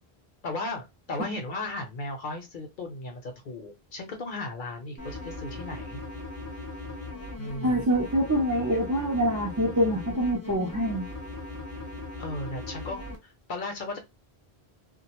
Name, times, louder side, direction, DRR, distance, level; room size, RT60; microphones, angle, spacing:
voice 1, 0.4-6.0 7.4-7.8 12.2-14.0, left 2 dB, 55° left, 0.7 m, -36 dB
sound 1, 5.0-13.2, left 2 dB, 15° left, 0.6 m, -39 dB
voice 2, 7.6-11.1, equal, 25° right, 0.4 m, -25 dB
2.4 x 2.2 x 2.8 m
omnidirectional pair, 1.0 m